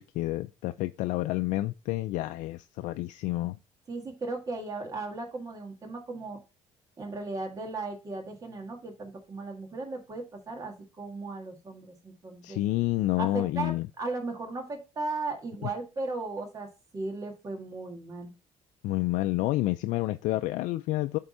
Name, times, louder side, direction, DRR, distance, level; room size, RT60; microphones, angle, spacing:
voice 1, 0.0-3.6 12.4-13.9 18.8-21.2, left 17 dB, 85° left, 0.4 m, -29 dB
voice 2, 3.9-6.4 7.0-12.6 13.2-16.7 16.9-18.3, right 3 dB, 30° right, 1.7 m, -36 dB
7.9 x 3.6 x 4.2 m
cardioid pair, 125°, 13 cm